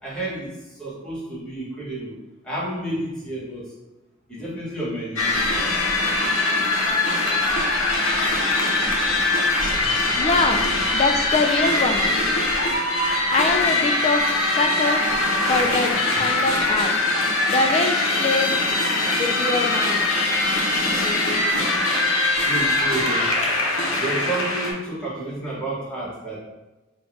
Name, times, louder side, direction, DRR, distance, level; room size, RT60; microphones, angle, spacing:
voice 1, 0.0-2.2 2.4-3.7 4.3-5.4 7.3-9.9 21.4-21.5 22.4-23.3 23.9-26.4, right 1 dB, 5° left, -8 dB, 1.2 m, -32 dB
sound 1, 5.2-24.7, left 2 dB, 85° left, 0.7 m, -22 dB
voice 2, 10.2-12.1 13.3-15.0 15.5-16.9 17.5-18.5 19.2-20.1, left 3 dB, 30° left, 5 dB, 0.3 m, -23 dB
3.8 x 2.4 x 3.5 m, 1.1 s
head